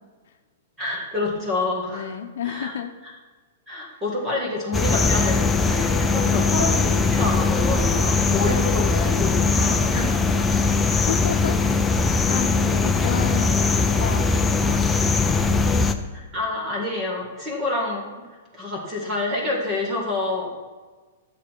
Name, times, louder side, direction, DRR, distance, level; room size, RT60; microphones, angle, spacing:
voice 1, 0.8-2.2 2.4-2.7 3.7-10.2 10.7-10.8 16.1-18.1 18.5-20.5, left 2 dB, 10° right, -2 dB, 1.8 m, -28 dB
voice 2, 1.9-2.9 6.3-7.0 8.2-8.4 10.3-11.6 11.8-14.8, left 8 dB, 65° left, 6 dB, 0.8 m, -32 dB
sound 1, 4.7-15.9, left 4 dB, 5° left, 0.4 m, -20 dB
12.0 x 7.3 x 4.6 m, 1.3 s
supercardioid pair, 175°, 0 cm